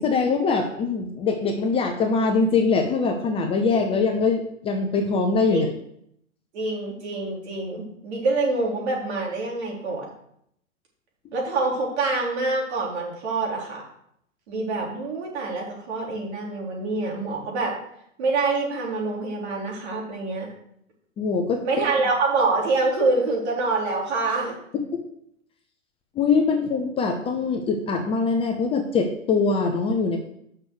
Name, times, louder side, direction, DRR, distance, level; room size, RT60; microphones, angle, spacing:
voice 1, 0.0-5.7 21.2-21.6 26.2-30.2, left 4 dB, 15° left, 4 dB, 0.7 m, -23 dB
voice 2, 6.5-10.1 11.3-13.8 14.5-17.7 18.2-20.5 21.6-24.5, right 3 dB, 55° right, -2 dB, 3.8 m, -26 dB
7.6 x 6.1 x 6.5 m, 0.74 s
hypercardioid pair, 125°, 39 cm